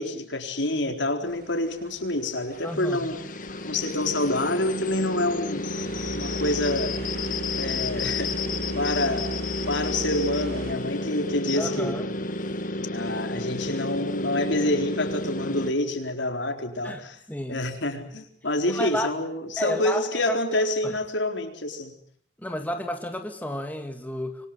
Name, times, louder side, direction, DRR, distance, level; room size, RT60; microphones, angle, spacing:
voice 1, 0.0-3.2 3.6-5.8 6.1-7.0 7.6-8.3 8.7-9.3 9.7-12.1 12.9-17.2 17.5-21.9, left 1 dB, 75° left, 5 dB, 4.3 m, -27 dB
sound 1, 1.3-10.7, right 1 dB, 50° right, 4.9 m, -40 dB
sound 2, 2.5-15.7, left 2 dB, 45° left, 1.7 m, -31 dB
voice 2, 2.6-3.1 11.6-12.1 16.8-17.0 17.3-17.7 18.7-19.1 19.6-20.4 20.8-21.0 22.4-24.5, left 1 dB, 10° left, 4 dB, 2.0 m, -31 dB
26.5 x 24.0 x 7.8 m, 0.63 s
head